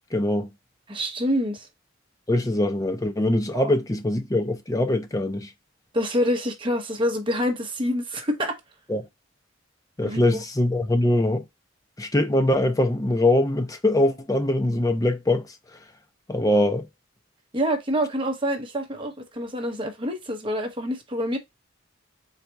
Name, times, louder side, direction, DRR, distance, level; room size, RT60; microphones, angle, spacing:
voice 1, 0.1-0.5 2.3-5.5 8.9-9.1 10.0-11.4 12.0-15.4 16.3-16.9, left 1 dB, 15° left, 0.5 m, -22 dB
voice 2, 0.9-1.7 3.5-3.7 5.9-8.6 10.0-10.2 17.5-21.4, equal, 25° right, 0.9 m, -26 dB
4.1 x 2.4 x 4.4 m
head